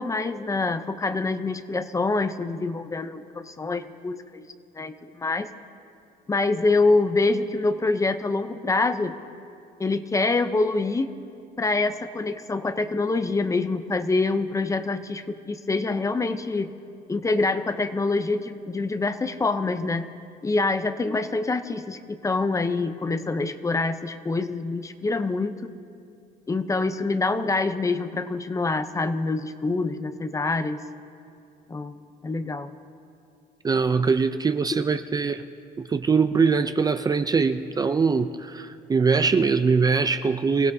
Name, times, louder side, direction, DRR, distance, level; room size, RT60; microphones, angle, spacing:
voice 1, 0.0-4.5 4.7-5.5 6.3-9.2 9.8-11.1 11.6-16.7 17.1-20.1 20.4-25.7 26.5-30.8 31.7-32.0 32.2-32.7, left 3 dB, 20° left, 11 dB, 0.6 m, -25 dB
voice 2, 33.6-35.4 35.9-40.7, right 5 dB, 20° right, 9 dB, 0.4 m, -22 dB
26.0 x 16.5 x 2.7 m, 2.5 s
cardioid pair, 110°, 17 cm